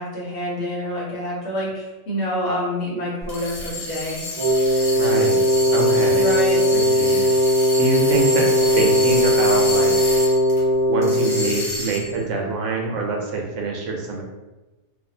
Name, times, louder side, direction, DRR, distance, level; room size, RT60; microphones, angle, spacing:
voice 1, 0.0-4.2 6.2-6.6, left 1 dB, 65° left, -5 dB, 1.1 m, -27 dB
sound 1, 3.2-10.6 11.0-12.2, left 1 dB, 40° left, 0.9 m, -30 dB
Wind instrument woodwind instrument, 4.4-11.7, equal, 45° right, 0.7 m, -18 dB
voice 2, 5.0-5.4 5.7-6.3 6.7-7.2 7.7-9.9 10.9-14.2, right 3 dB, 80° right, 0 dB, 1.0 m, -25 dB
2.5 x 2.4 x 2.7 m, 1.1 s
omnidirectional pair, 1.2 m